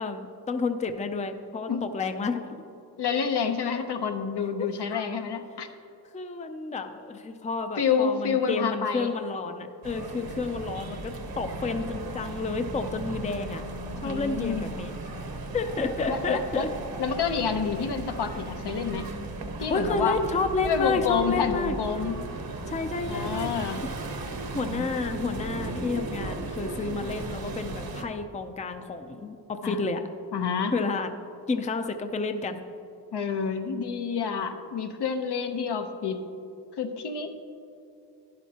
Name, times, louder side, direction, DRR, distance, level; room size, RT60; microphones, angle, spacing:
voice 1, 0.0-2.6 4.9-5.2 6.1-13.6 14.0-14.9 15.5-16.7 19.6-21.7 22.7-23.5 23.8-23.9 24.5-30.0 30.7-31.1 31.5-32.6, left 3 dB, 20° left, 7 dB, 0.5 m, -30 dB
voice 2, 3.0-5.7 7.8-9.1 14.0-14.6 16.1-16.7 17.0-19.1 19.6-20.2 20.6-22.2 23.1-23.8 29.6-29.8 30.3-30.7 33.1-36.2 36.8-37.5, left 6 dB, 70° left, 6 dB, 0.9 m, -28 dB
sound 1, 9.8-28.0, right 2 dB, 60° right, 1.0 m, -36 dB
11.5 x 11.0 x 2.9 m, 2.8 s
wide cardioid pair, 100°, 41 cm